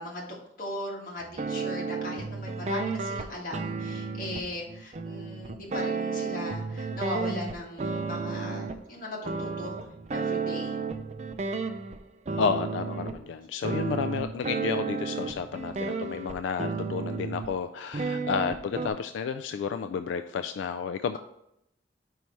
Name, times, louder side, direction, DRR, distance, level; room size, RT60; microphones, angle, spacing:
voice 1, 0.0-10.8, left 1 dB, 50° left, -3 dB, 1.7 m, -38 dB
sound 1, 1.2-8.8 9.2-12.0 12.3-13.2 13.6-17.5 17.9-18.9, right 4 dB, 35° right, 0.4 m, -32 dB
voice 2, 12.4-21.2, left 6 dB, 90° left, 9 dB, 0.3 m, -31 dB
5.3 x 4.7 x 4.4 m, 0.79 s
head